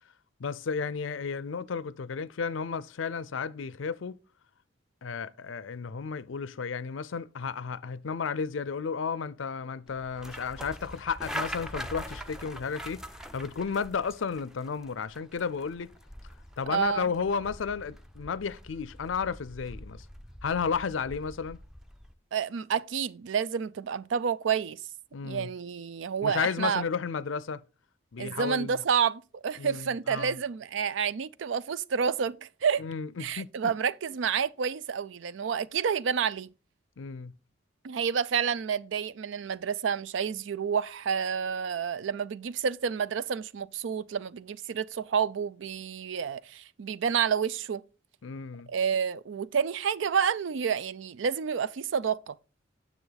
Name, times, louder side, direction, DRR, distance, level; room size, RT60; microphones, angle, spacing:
voice 1, 0.4-4.2 5.0-15.9 16.6-20.1 20.4-21.6 25.1-25.5 26.2-27.6 28.1-28.8 29.6-30.4 32.8-33.7 37.0-37.3 48.2-48.7, left 5 dB, 75° left, 0.5 m, -33 dB
sound 1, 9.9-22.1, equal, 5° right, 0.5 m, -43 dB
voice 2, 16.7-17.1 22.3-24.8 25.2-26.8 28.2-32.8 33.2-36.5 37.8-47.8 48.7-52.3, right 7 dB, 70° right, 0.4 m, -29 dB
9.7 x 7.0 x 4.0 m
head